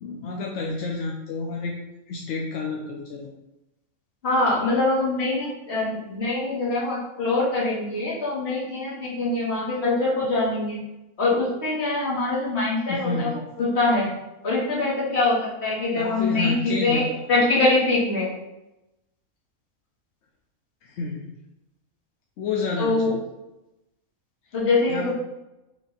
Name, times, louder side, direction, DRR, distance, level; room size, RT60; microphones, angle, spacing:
voice 1, 0.0-1.7 2.1-3.3 12.9-13.4 16.0-17.0 20.9-21.2 22.4-23.2 24.9-25.1, left 3 dB, 65° left, -1 dB, 0.8 m, -29 dB
voice 2, 4.2-10.8 11.2-13.3 13.6-14.1 14.4-18.3 22.8-23.1 24.5-25.1, left 2 dB, 45° left, -7 dB, 1.8 m, -23 dB
4.6 x 2.6 x 4.0 m, 0.95 s
omnidirectional pair, 1.5 m